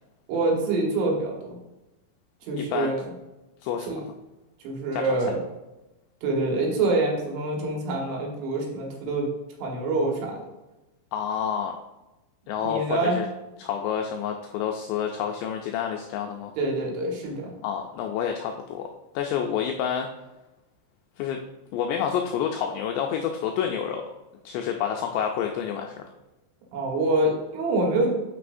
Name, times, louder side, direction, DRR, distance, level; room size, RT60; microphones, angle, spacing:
voice 1, 0.3-1.6 2.4-3.0 3.9-4.0 4.6-5.4 6.2-9.3 9.6-10.3 12.6-13.2 16.6-17.5 26.7-28.1, right 2 dB, 80° right, -1 dB, 3.9 m, -26 dB
voice 2, 2.5-2.9 3.6-4.0 4.9-5.0 11.1-11.8 12.5-13.3 13.6-16.5 17.6-18.9 19.2-20.1 21.2-21.4 21.7-24.0 24.5-26.0, left 8 dB, 90° left, 3 dB, 2.4 m, -28 dB
11.5 x 4.8 x 2.6 m, 1.0 s
omnidirectional pair, 5.5 m